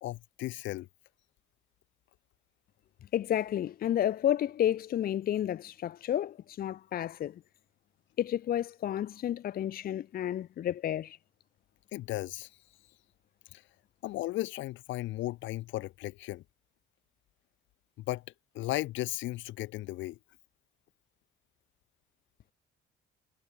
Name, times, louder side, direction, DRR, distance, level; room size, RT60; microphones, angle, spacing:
voice 1, 0.0-0.9 11.9-12.5 13.5-13.6 14.0-16.4 18.0-18.2 18.5-20.2, left 17 dB, 80° left, 1.7 m, -35 dB
voice 2, 3.1-7.4 8.2-11.2, left 11 dB, 50° left, 0.8 m, -31 dB
cardioid pair, 115°, 19 cm